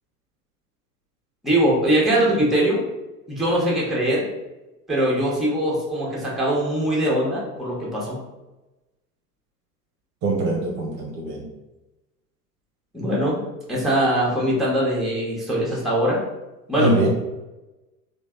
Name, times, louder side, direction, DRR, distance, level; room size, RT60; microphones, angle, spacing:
voice 1, 1.4-2.8 3.3-4.3 4.9-8.2 12.9-13.4 13.7-16.2 16.7-16.9, right 1 dB, ahead, -5 dB, 1.1 m, -21 dB
voice 2, 10.2-11.4 16.8-17.1, right 2 dB, 40° right, -2 dB, 0.9 m, -23 dB
3.1 x 2.4 x 3.6 m, 1.0 s
figure-of-eight pair, 75°, 47 cm